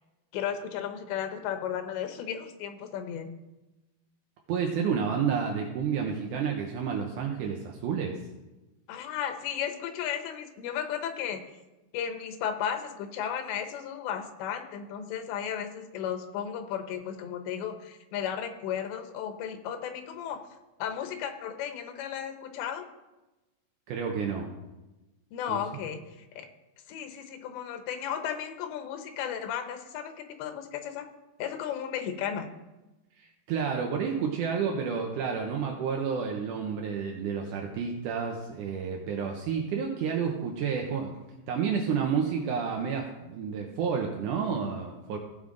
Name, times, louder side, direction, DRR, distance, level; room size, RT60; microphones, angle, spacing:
voice 1, 0.3-3.3 8.9-11.4 11.9-20.4 20.8-22.9 25.3-26.5 26.9-31.1 31.4-32.5, left 9 dB, 90° left, 7 dB, 3.2 m, -34 dB
voice 2, 4.5-8.2 23.9-24.5 25.5-25.6 33.2-41.1 41.5-45.2, right 6 dB, 80° right, 1 dB, 1.8 m, -30 dB
16.5 x 7.2 x 3.9 m, 1.0 s
omnidirectional pair, 4.9 m